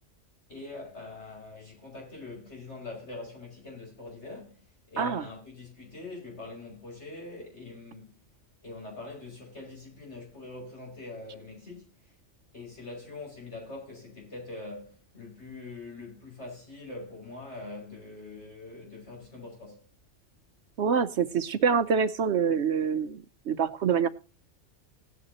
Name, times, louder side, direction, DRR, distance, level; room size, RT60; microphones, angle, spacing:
voice 1, 0.5-8.2 8.6-12.2 12.5-19.8, left 2 dB, 55° left, 6.3 m, -43 dB
voice 2, 20.8-24.1, right 6 dB, 65° right, 0.9 m, -26 dB
17.0 x 9.4 x 2.8 m
omnidirectional pair, 1.3 m